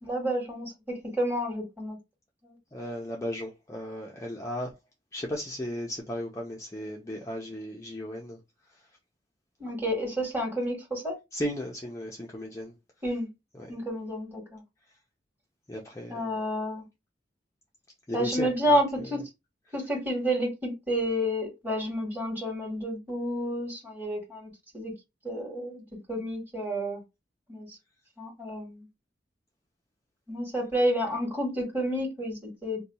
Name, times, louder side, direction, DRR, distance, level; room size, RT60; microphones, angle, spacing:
voice 1, 0.0-0.7 1.2-2.0 2.4-2.5 9.6-11.1 13.0-13.3 13.7-14.6 16.1-16.8 18.1-19.2 19.7-24.9 25.2-25.8 26.1-27.0 27.5-27.7 28.2-28.8 30.3-32.8, equal, 10° right, 1.5 m, -30 dB
voice 2, 2.7-4.7 5.1-8.4 11.3-12.7 13.6-13.8 15.7-16.3 18.1-18.8, equal, 15° left, 0.5 m, -35 dB
2.7 x 2.2 x 4.1 m
head